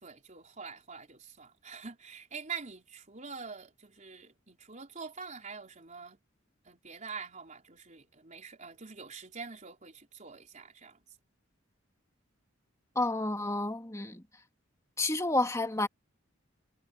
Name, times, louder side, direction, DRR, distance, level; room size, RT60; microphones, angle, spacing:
voice 1, 0.0-6.2 6.6-11.0, right 5 dB, 40° right, 4.4 m, -45 dB
voice 2, 13.0-14.2 15.0-15.9, left 2 dB, 15° left, 2.3 m, -30 dB
head